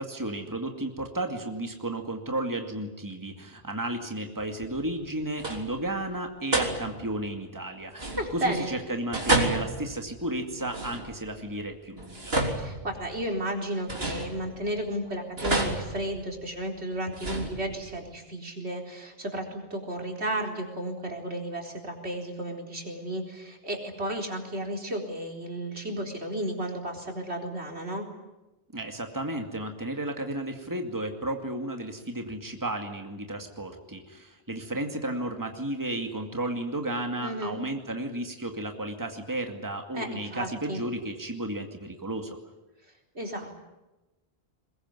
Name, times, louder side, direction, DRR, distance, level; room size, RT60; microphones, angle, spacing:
voice 1, 0.0-12.3 28.7-42.4, right 1 dB, 20° right, 4 dB, 2.3 m, -33 dB
sound 1, 4.6-5.1 5.3-5.9 6.5-7.2 7.9-8.6 9.1-11.4 12.0-13.3 13.9-14.8 15.4-16.6 17.1-18.0, right 2 dB, 65° right, 3.8 m, -31 dB
voice 2, 8.2-8.7 12.6-28.0 37.2-37.6 39.9-40.8 43.1-43.6, right 1 dB, 85° right, 2 dB, 4.4 m, -33 dB
22.0 x 21.5 x 9.6 m, 1.0 s
omnidirectional pair, 1.1 m